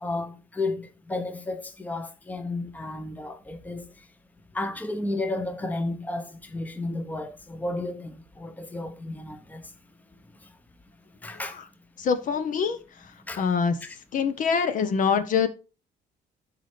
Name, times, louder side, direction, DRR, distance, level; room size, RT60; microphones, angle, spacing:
voice 1, 0.0-4.1 4.5-9.7 11.2-11.6 13.2-13.4 13.8-14.0, left 2 dB, 10° left, 0.8 m, -33 dB
voice 2, 12.0-12.8 13.4-13.8 14.1-15.5, left 6 dB, 50° left, 0.8 m, -24 dB
12.0 x 4.2 x 3.3 m
cardioid pair, 110°, 17 cm